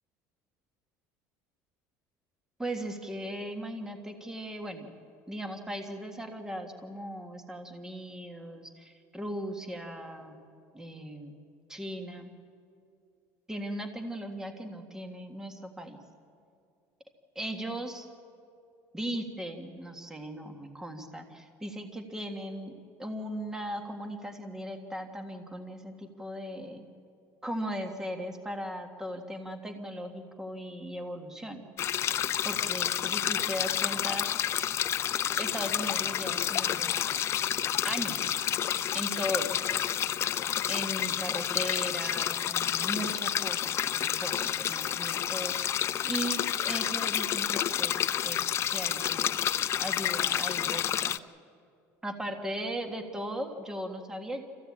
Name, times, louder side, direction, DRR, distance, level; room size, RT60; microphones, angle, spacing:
voice 1, 2.6-4.9 5.3-10.3 10.7-11.3 11.7-12.3 13.5-16.0 17.3-18.0 18.9-22.7 23.0-26.8 27.4-31.6 32.4-34.6 35.4-37.2 37.8-38.4 38.9-39.6 40.7-49.5 49.8-51.2 52.0-54.4, equal, 10° right, 4 dB, 1.7 m, -38 dB
sound 1, 31.8-51.2, left 10 dB, 40° left, 0.5 m, -29 dB
26.5 x 15.5 x 8.6 m, 2.4 s
cardioid pair, 130°, 7 cm